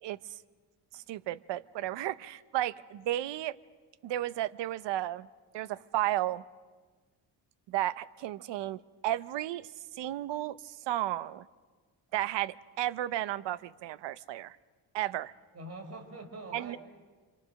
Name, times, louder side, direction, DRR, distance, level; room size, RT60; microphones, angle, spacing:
voice 1, 0.9-3.6 4.0-5.3 5.5-6.4 7.7-9.7 9.9-11.5 12.1-14.6 14.9-15.3 16.5-16.8, right 13 dB, 90° right, 17 dB, 0.8 m, -33 dB
voice 2, 15.5-16.8, right 2 dB, 40° right, 5 dB, 4.6 m, -44 dB
28.0 x 27.0 x 6.5 m, 1.4 s
cardioid pair, 140°, 41 cm